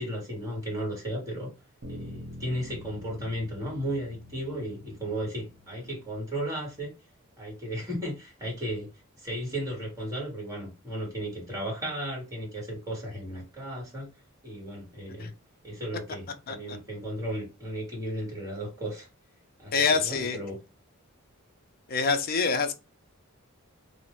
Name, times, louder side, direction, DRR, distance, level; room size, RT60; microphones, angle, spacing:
voice 1, 0.0-1.5 1.9-6.9 7.4-8.9 9.2-14.1 14.4-15.3 15.6-19.1 19.6-20.6, equal, 15° right, 1.3 m, -35 dB
sound 1, 1.8-6.2, left 1 dB, 55° right, 0.9 m, -45 dB
voice 2, 16.5-16.8 19.7-20.4 21.9-22.7, left 4 dB, 45° left, 0.4 m, -26 dB
2.5 x 2.0 x 3.0 m
head